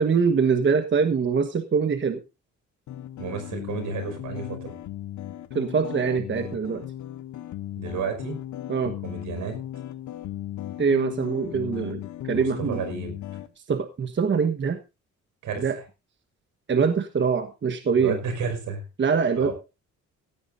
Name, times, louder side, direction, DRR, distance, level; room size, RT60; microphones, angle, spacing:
voice 1, 0.0-2.2 5.5-6.8 8.7-8.9 10.8-12.8 13.7-14.8 15.6-15.8 16.7-18.2 19.0-19.5, right 5 dB, 40° right, 9 dB, 1.3 m, -23 dB
sound 1, 2.9-13.5, left 13 dB, 70° left, 0.9 m, -36 dB
voice 2, 3.2-4.7 7.8-8.4 9.0-9.6 12.3-13.2 15.4-15.6 18.0-18.8 19.4-19.5, right 5 dB, 80° right, 7 dB, 5.5 m, -31 dB
16.5 x 14.0 x 2.7 m, 0.28 s
cardioid pair, 90°, 30 cm